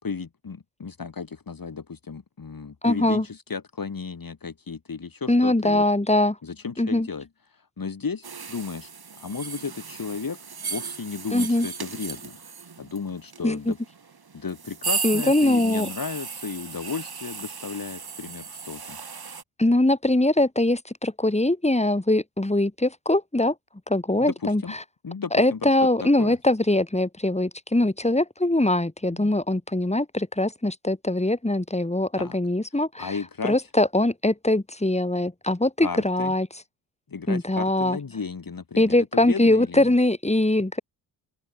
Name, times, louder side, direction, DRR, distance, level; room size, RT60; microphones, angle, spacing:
voice 1, 0.0-5.8 6.4-8.9 9.2-10.4 10.7-12.4 12.8-13.8 14.3-19.0 24.2-24.7 25.0-25.7 26.0-26.4 29.1-29.3 32.2-32.4 32.7-33.6 35.8-36.3 37.1-39.9, left 5 dB, 40° left, 4.3 m, -34 dB
voice 2, 2.8-3.2 5.3-6.4 6.8-7.1 11.3-11.7 13.4-13.7 15.0-15.9 19.6-23.5 23.9-24.6 25.3-33.1 33.4-36.5 37.3-38.0 38.8-40.8, left 1 dB, 15° left, 6.4 m, -22 dB
sound 1, 8.2-19.4, right 5 dB, 45° right, 5.8 m, -35 dB
open air
hypercardioid pair, 40°, 50 cm